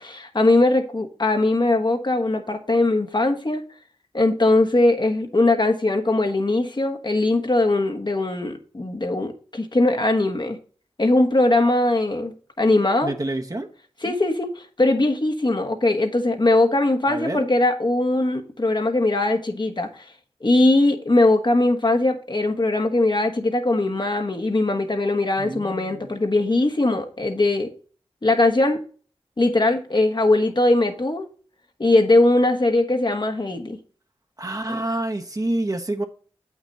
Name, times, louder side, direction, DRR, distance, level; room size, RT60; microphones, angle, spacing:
voice 1, 0.0-3.6 4.1-10.6 11.0-13.1 14.0-20.0 20.4-27.7 28.2-28.8 29.4-31.3 31.8-33.8 34.7-34.8, left 2 dB, 45° left, 1.4 m, -20 dB
voice 2, 13.0-13.7 14.1-14.2 17.1-17.4 25.4-26.1 34.4-36.0, right 1 dB, 35° right, 1.1 m, -28 dB
8.1 x 6.0 x 4.1 m
cardioid pair, 45°, 10 cm